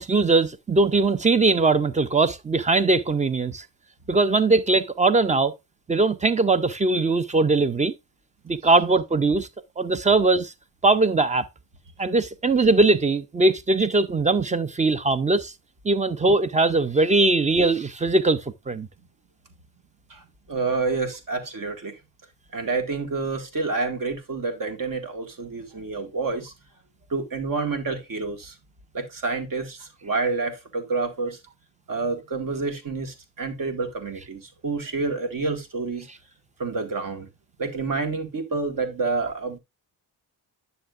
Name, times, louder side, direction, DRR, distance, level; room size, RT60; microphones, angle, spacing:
voice 1, 0.0-3.7 4.1-5.5 5.9-7.9 8.5-9.5 9.8-10.5 10.8-11.5 12.0-15.5 15.8-18.9, right 3 dB, 15° right, 0.5 m, -20 dB
voice 2, 20.5-22.0 22.5-26.5 27.1-28.6 28.9-31.4 31.9-36.1 36.6-37.3 37.6-39.6, right 4 dB, 50° right, 2.1 m, -28 dB
10.0 x 6.7 x 2.5 m
wide cardioid pair, 155°, 43 cm